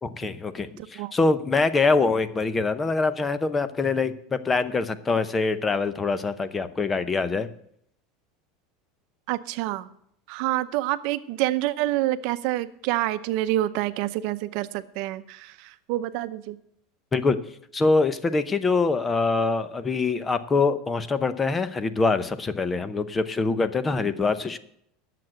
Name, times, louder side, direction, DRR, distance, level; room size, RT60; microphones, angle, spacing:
voice 1, 0.0-7.5 17.1-17.4 17.7-24.6, left 3 dB, 15° left, 13 dB, 0.7 m, -24 dB
voice 2, 9.3-9.9 10.3-16.6, right 15 dB, 55° right, 11 dB, 0.7 m, -27 dB
10.0 x 7.6 x 7.7 m, 0.71 s
supercardioid pair, 150°, 0 cm